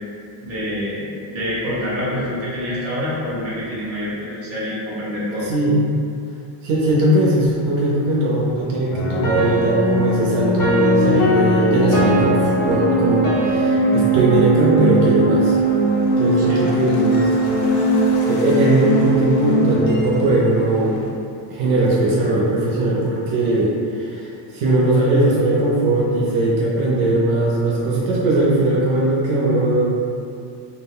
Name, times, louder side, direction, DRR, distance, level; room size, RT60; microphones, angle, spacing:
voice 1, 0.4-5.5 16.4-16.7 17.1-17.3, left 1 dB, 30° right, -9 dB, 1.0 m, -26 dB
voice 2, 5.5-5.8 6.6-15.6 16.2-17.3 18.3-21.0 21.5-30.0, right 2 dB, 75° right, -5 dB, 0.7 m, -19 dB
sound 1, 8.9-21.2, right 1 dB, 45° left, 0.6 m, -19 dB
sound 2, 15.4-21.1, left 2 dB, 85° left, 0.6 m, -38 dB
2.3 x 2.1 x 3.4 m, 2.5 s
cardioid pair, 145°, 49 cm